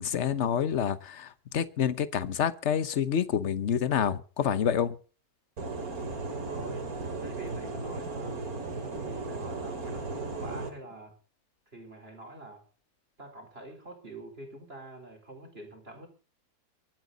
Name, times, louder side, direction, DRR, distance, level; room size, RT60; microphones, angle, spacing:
voice 1, 0.0-5.0, left 8 dB, 50° left, 1.2 m, -28 dB
sound 1, 5.6-10.7, right 3 dB, 70° right, 2.9 m, -36 dB
voice 2, 6.3-6.9 7.2-8.5 8.9-11.2 11.7-12.6 13.2-16.1, right 2 dB, 40° right, 4.5 m, -46 dB
24.0 x 9.2 x 4.0 m
omnidirectional pair, 1.6 m